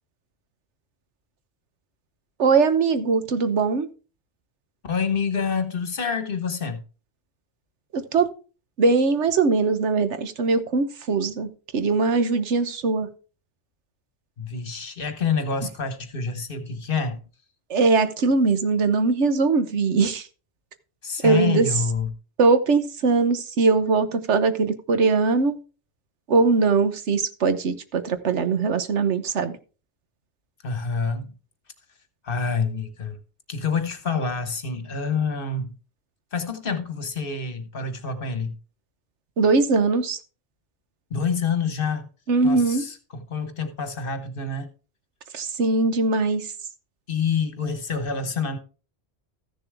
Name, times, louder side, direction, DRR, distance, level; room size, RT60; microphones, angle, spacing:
voice 1, 2.4-3.9 7.9-8.3 8.8-13.1 17.7-20.3 21.2-21.7 22.4-25.6 26.3-29.6 39.4-40.2 42.3-42.8 45.3-46.5, right 4 dB, 90° right, 1.3 m, -21 dB
voice 2, 4.8-6.8 14.4-17.2 21.0-22.1 30.6-31.3 32.2-33.2 33.5-35.7 36.3-38.5 41.1-42.1 42.4-44.7 47.1-48.6, left 5 dB, 55° left, 1.3 m, -27 dB
14.5 x 6.9 x 3.5 m
omnidirectional pair, 1.1 m